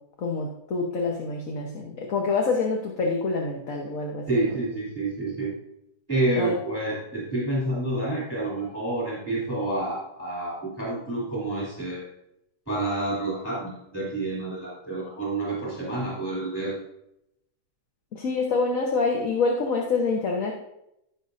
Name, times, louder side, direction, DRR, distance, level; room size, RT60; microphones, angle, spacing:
voice 1, 0.2-4.3 6.4-6.5 18.1-20.5, left 4 dB, 55° left, 0 dB, 1.6 m, -26 dB
voice 2, 4.3-5.6 6.1-12.1 12.7-16.8, right 2 dB, 5° left, -7 dB, 3.3 m, -28 dB
16.0 x 6.4 x 2.7 m, 0.82 s
omnidirectional pair, 1.8 m